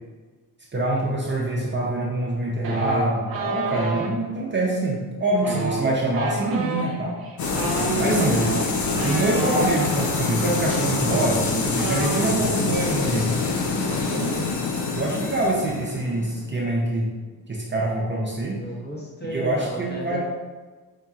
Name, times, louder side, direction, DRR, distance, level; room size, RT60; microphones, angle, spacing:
voice 1, 0.7-7.2 8.0-8.5 9.0-13.3 14.1-14.4 14.9-17.1 17.5-18.6 19.3-20.2, right 2 dB, 30° right, -3 dB, 0.6 m, -25 dB
sound 1, 2.6-4.1 5.3-9.7 10.7-10.8 11.0-12.7 12.9-13.2 13.5-13.9, right 3 dB, 60° right, 0.8 m, -29 dB
sound 2, 7.4-17.0, left 4 dB, 45° left, 0.6 m, -26 dB
voice 2, 7.7-8.1 18.6-20.2, right 1 dB, 25° left, -4 dB, 1.1 m, -35 dB
Wind instrument woodwind instrument, 8.3-12.6, left 3 dB, 80° left, 1.3 m, -41 dB
5.4 x 2.8 x 2.4 m, 1.3 s
cardioid pair, 95°, 41 cm